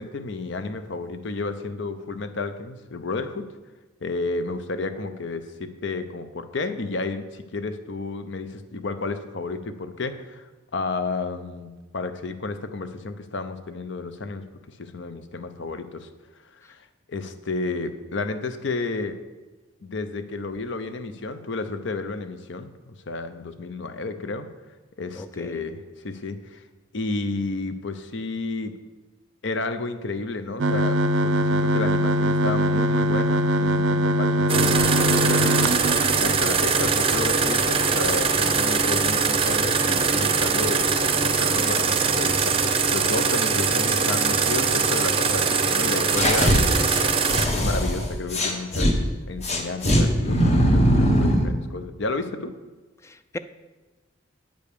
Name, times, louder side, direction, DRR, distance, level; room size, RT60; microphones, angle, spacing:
voice 1, 0.0-3.5 4.0-10.5 10.7-16.1 16.7-19.2 19.8-24.5 25.0-26.6 26.9-28.7 29.4-35.8 36.2-46.8 47.5-49.0 49.3-52.5, left 3 dB, 65° left, 10 dB, 0.7 m, -32 dB
voice 2, 25.2-25.6 53.0-53.4, left 1 dB, 15° left, 12 dB, 0.3 m, -37 dB
sound 1, 30.6-36.5, equal, 70° right, 0.5 m, -22 dB
sound 2, 34.5-47.5, right 5 dB, 30° right, 0.6 m, -22 dB
sound 3, 46.1-48.9 49.4-51.5, equal, 35° left, 1.1 m, -21 dB
9.0 x 5.2 x 6.7 m, 1.2 s
head